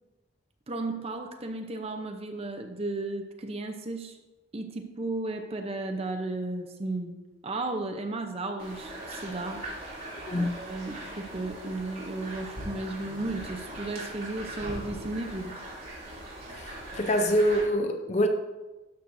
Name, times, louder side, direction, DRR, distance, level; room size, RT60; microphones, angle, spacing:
voice 1, 0.7-4.2 4.5-7.2 7.4-9.7 10.3-15.5, right 2 dB, 30° right, 4 dB, 0.7 m, -34 dB
sound 1, 8.6-17.6, right 1 dB, 45° right, 2.8 m, -40 dB
voice 2, 16.9-18.3, equal, 35° left, 6 dB, 0.6 m, -24 dB
12.0 x 6.3 x 2.6 m, 1.1 s
head